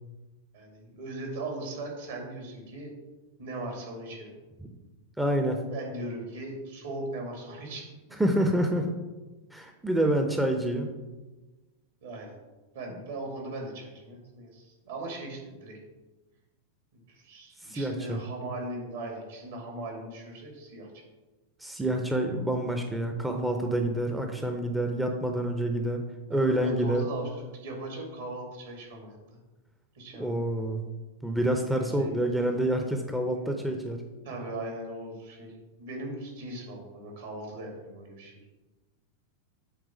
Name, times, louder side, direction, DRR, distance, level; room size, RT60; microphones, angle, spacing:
voice 1, 0.5-2.9 3.4-4.3 5.7-7.8 12.0-12.4 12.7-15.8 17.1-20.9 26.3-29.2 29.9-30.3 32.0-32.2 33.3-33.7 34.2-38.5, right 2 dB, 60° right, 1 dB, 2.3 m, -39 dB
voice 2, 5.2-5.6 8.2-8.9 9.5-10.9 17.6-18.2 21.6-26.0 26.3-27.0 30.1-30.8 31.2-34.0, right 1 dB, 5° right, 4 dB, 0.7 m, -27 dB
8.0 x 3.7 x 6.1 m, 1.2 s
figure-of-eight pair, 90°, 0 cm